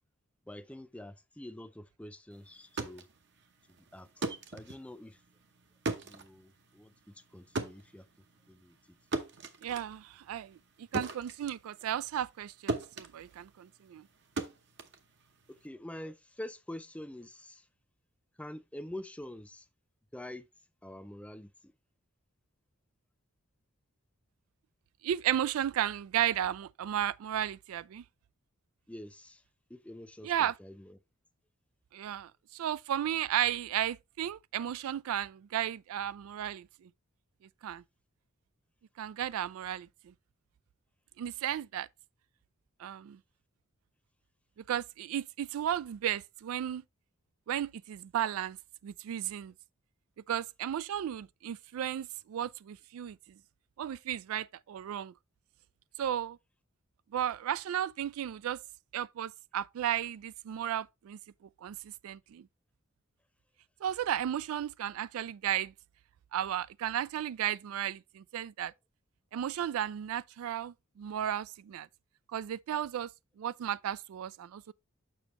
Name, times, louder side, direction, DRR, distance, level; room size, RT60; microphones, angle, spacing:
voice 1, 0.5-3.0 3.8-5.2 6.0-8.1 8.5-9.0 15.5-17.7 18.4-19.7 20.1-20.5 20.8-21.7 28.9-29.4 29.7-31.0, left 1 dB, 5° left, 0.4 m, -46 dB
sound 1, 2.5-12.4 12.7-15.7, right 3 dB, 55° right, 0.8 m, -39 dB
voice 2, 9.6-14.1 25.0-28.0 30.2-30.5 31.9-36.9 37.6-37.8 39.0-40.1 41.2-41.9 42.8-43.2 44.7-46.8 47.5-48.6 48.8-49.5 50.3-53.4 53.8-55.1 56.0-56.4 57.1-58.6 58.9-62.5 63.8-65.7 66.3-68.7 69.3-71.9 72.3-73.1 73.4-74.7, right 10 dB, 80° right, 0.3 m, -34 dB
6.9 x 6.1 x 3.0 m
head